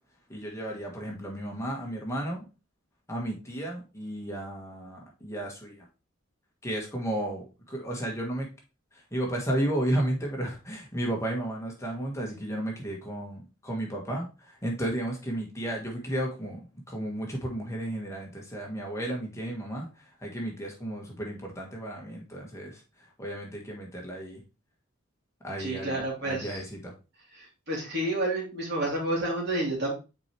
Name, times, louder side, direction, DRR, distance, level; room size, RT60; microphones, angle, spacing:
voice 1, 0.3-2.4 3.1-5.8 6.6-8.5 9.1-16.6 16.9-19.9 20.2-22.8 23.2-24.4 25.4-26.9, right 1 dB, 15° left, -1 dB, 1.6 m, -33 dB
voice 2, 25.6-26.6 27.3-29.9, right 1 dB, 55° right, -2 dB, 2.8 m, -30 dB
6.0 x 4.6 x 3.4 m, 0.29 s
head